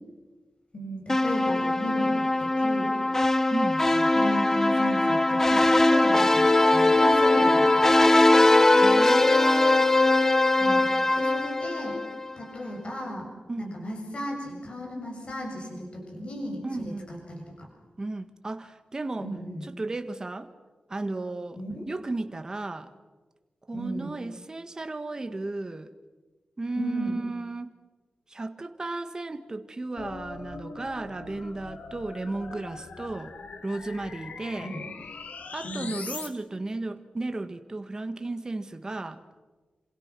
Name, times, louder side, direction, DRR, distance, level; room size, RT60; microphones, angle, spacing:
voice 1, 0.7-2.9 3.7-5.6 5.9-7.9 10.6-12.0 12.4-13.3 13.6-17.7 19.2-19.7 21.6-21.9 23.7-24.2 26.8-27.2 34.6-34.9 35.6-35.9, equal, 50° left, 0 dB, 7.5 m, -35 dB
sound 1, 1.1-12.3, left 2 dB, 15° left, 0.9 m, -21 dB
voice 2, 3.5-3.8 8.7-9.9 13.5-13.8 16.6-17.1 18.0-19.3 19.6-20.5 20.9-21.6 21.9-22.9 23.7-25.9 26.6-27.7 28.3-33.3 33.6-34.7 35.5-39.2, right 2 dB, 25° right, 8 dB, 1.6 m, -34 dB
sound 2, 30.0-36.3, left 4 dB, 85° left, 2.2 m, -41 dB
29.0 x 27.0 x 6.2 m, 1.2 s
wide cardioid pair, 145°, 3 cm